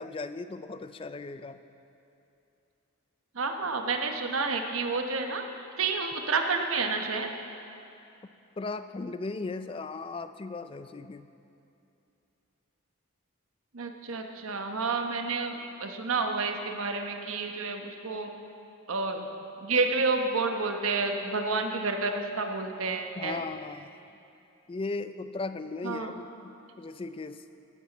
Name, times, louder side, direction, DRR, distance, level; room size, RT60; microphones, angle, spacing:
voice 1, 0.0-1.6 8.6-11.3 23.2-23.9 24.7-27.4, left 3 dB, 25° left, 11 dB, 0.3 m, -37 dB
voice 2, 3.3-7.3 13.7-18.3 18.9-19.3 19.6-23.4 25.8-26.1, right 4 dB, 75° right, 4 dB, 1.0 m, -30 dB
17.0 x 9.3 x 4.1 m, 2.7 s
head